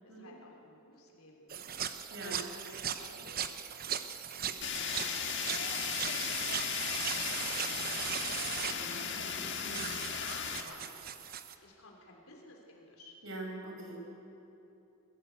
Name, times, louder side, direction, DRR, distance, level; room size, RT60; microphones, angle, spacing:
voice 1, 0.0-3.5 4.5-8.8 10.2-10.9 11.6-13.2, left 2 dB, 85° left, -1 dB, 3.5 m, -55 dB
sound 1, 1.5-11.5, right 8 dB, 45° right, 0.9 m, -39 dB
Fire, 4.6-10.6, left 7 dB, 55° left, 1.6 m, -36 dB
voice 2, 8.7-9.9 13.2-13.9, right 2 dB, 70° right, 0 dB, 5.2 m, -44 dB
21.5 x 16.0 x 8.1 m, 3.0 s
head